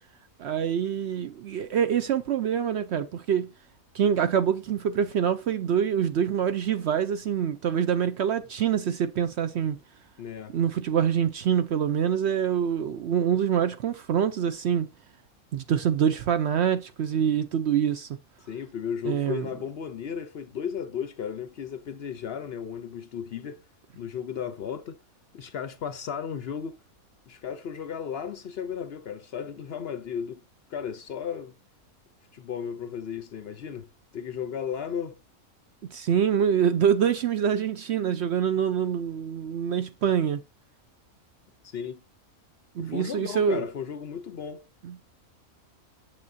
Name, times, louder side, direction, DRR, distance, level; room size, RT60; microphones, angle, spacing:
voice 1, 0.4-3.5 3.9-9.8 10.5-14.9 15.5-18.1 19.0-19.5 35.9-40.4 42.8-43.6 44.8-45.0, right 8 dB, 65° right, 0.7 m, -25 dB
voice 2, 10.2-10.6 18.5-23.6 23.9-25.0 25.3-26.8 27.3-30.4 30.7-31.6 32.3-33.9 34.1-35.2 41.6-42.0 42.8-44.7, left 7 dB, 60° left, 0.7 m, -35 dB
7.9 x 7.0 x 2.6 m
omnidirectional pair, 1.5 m